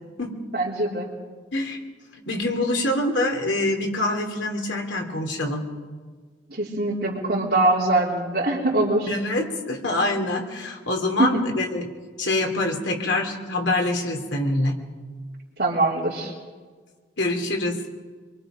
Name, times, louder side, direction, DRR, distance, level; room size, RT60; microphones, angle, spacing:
voice 1, 0.5-1.1 6.5-9.1 11.2-11.4 15.6-16.3, right 2 dB, 55° right, -6 dB, 3.3 m, -23 dB
voice 2, 2.2-5.6 9.1-11.9 12.2-14.8 17.2-17.9, left 2 dB, 85° left, 2 dB, 3.3 m, -25 dB
25.5 x 23.0 x 5.1 m, 1.5 s
head